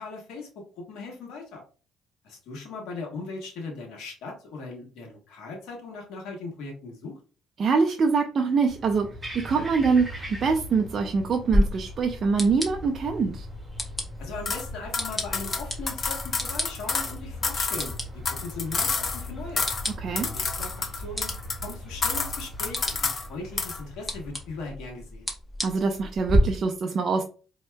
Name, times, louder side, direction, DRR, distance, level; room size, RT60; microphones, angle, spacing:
voice 1, 0.0-1.6 2.2-7.2 14.2-19.6 20.1-21.3 21.6-25.3, left 3 dB, 75° left, 0 dB, 1.1 m, -39 dB
voice 2, 7.6-9.1 9.3-13.5 20.0-20.3 25.6-27.2, right 4 dB, 50° right, 4 dB, 0.5 m, -24 dB
sound 1, 8.7-24.7, left 1 dB, 20° right, 1.8 m, -40 dB
sound 2, 11.5-26.4, equal, 15° left, 1.3 m, -34 dB
sound 3, 14.5-14.7 14.9-17.1 17.4-19.3 19.6-19.9 20.2-21.7 22.0-23.3 23.6-23.8, left 4 dB, 45° left, 0.7 m, -29 dB
4.2 x 2.7 x 2.2 m, 0.37 s
supercardioid pair, 70°, 0 cm